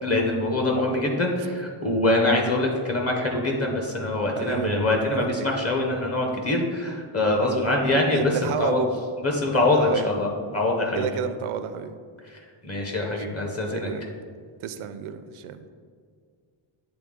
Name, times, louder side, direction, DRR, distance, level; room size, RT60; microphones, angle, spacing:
voice 1, 0.0-8.8 9.2-11.1 12.6-13.9, left 2 dB, 30° left, 0 dB, 0.7 m, -24 dB
voice 2, 4.4-5.5 7.4-7.8 8.1-8.9 9.3-10.1 10.9-11.9 13.3-13.4 13.7-14.1 14.6-15.7, right 8 dB, 80° right, 10 dB, 0.5 m, -31 dB
8.0 x 3.6 x 3.6 m, 2.1 s
wide cardioid pair, 150°, 50 cm